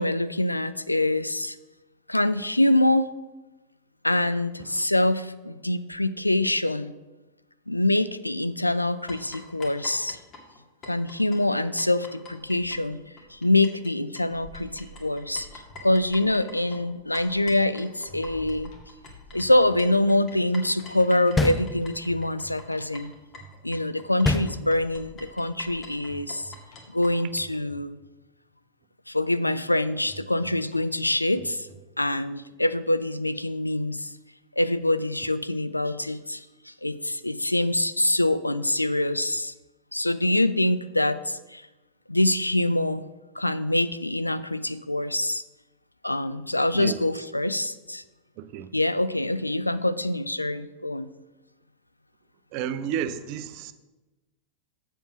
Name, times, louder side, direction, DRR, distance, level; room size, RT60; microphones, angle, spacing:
voice 1, 0.0-1.6 2.1-3.1 4.0-6.9 7.7-10.2 10.8-13.0 13.3-18.7 19.3-23.1 23.6-26.5 26.9-28.0 29.1-31.7 32.0-34.1 34.6-39.5 39.9-41.6 42.1-43.1 43.4-45.4 46.0-48.0 48.7-51.1, left 1 dB, 85° left, 14 dB, 0.3 m, -25 dB
sound 1, 9.1-13.9 14.2-27.1, left 2 dB, 30° left, 1.9 m, -45 dB
sound 2, 15.7-17.7 18.0-24.4 26.1-28.4 30.1-32.4, right 3 dB, 50° left, 1.7 m, -51 dB
sound 3, 21.4-22.3 24.2-25.2, left 2 dB, 15° left, 0.6 m, -27 dB
voice 2, 48.4-48.7 52.5-53.7, right 9 dB, 45° right, 12 dB, 0.6 m, -31 dB
7.3 x 6.9 x 5.9 m, 1.1 s
figure-of-eight pair, 90°, 0 cm